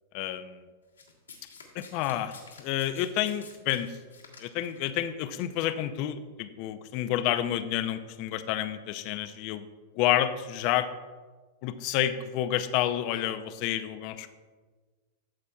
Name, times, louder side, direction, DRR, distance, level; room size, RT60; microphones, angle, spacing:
voice 1, 0.1-0.6 1.7-3.9 4.4-9.7 9.9-10.9 11.6-14.3, left 12 dB, 45° left, 11 dB, 0.6 m, -29 dB
Domestic sounds home sounds, 1.0-4.9 5.8-6.0, left 5 dB, 80° left, 1.7 m, -50 dB
13.5 x 7.5 x 2.4 m, 1.4 s
figure-of-eight pair, 95°, 0 cm